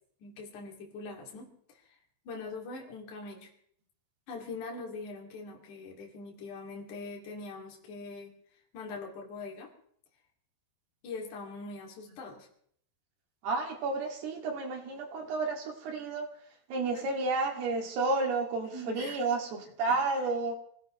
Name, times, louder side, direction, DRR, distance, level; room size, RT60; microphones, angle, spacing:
voice 1, 0.2-1.5 1.8-1.9 2.3-3.5 4.3-8.3 8.7-9.7 11.0-12.5 16.9-17.1 18.7-19.2 19.6-20.0, left 3 dB, 50° left, -1 dB, 3.8 m, -42 dB
voice 2, 13.4-16.3 16.7-20.5, right 3 dB, 65° right, 0 dB, 4.4 m, -31 dB
26.5 x 16.0 x 3.2 m, 0.65 s
omnidirectional pair, 5.2 m